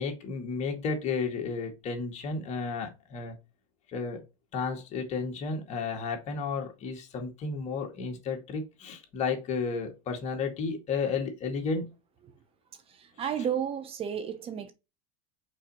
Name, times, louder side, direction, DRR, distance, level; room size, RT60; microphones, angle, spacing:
voice 1, 0.0-3.4 3.9-4.2 4.5-11.9, left 5 dB, 40° left, 2.2 m, -32 dB
voice 2, 13.2-14.7, right 8 dB, 30° right, 1.0 m, -31 dB
5.4 x 4.4 x 4.2 m
supercardioid pair, 125°, 18 cm